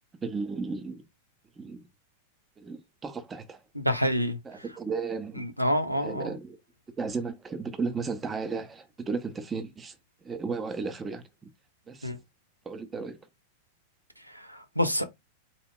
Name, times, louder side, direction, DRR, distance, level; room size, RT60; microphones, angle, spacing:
voice 1, 0.2-1.0 1.6-1.8 2.6-3.6 4.4-5.4 5.9-6.6 7.0-10.0 10.2-11.2 11.9-12.1 12.7-13.2, right 4 dB, 20° right, 0.6 m, -34 dB
voice 2, 3.8-4.6 5.6-6.3 12.0-12.2 14.3-15.0, equal, 90° right, 0.5 m, -27 dB
3.6 x 2.2 x 3.7 m
figure-of-eight pair, 90°, 0 cm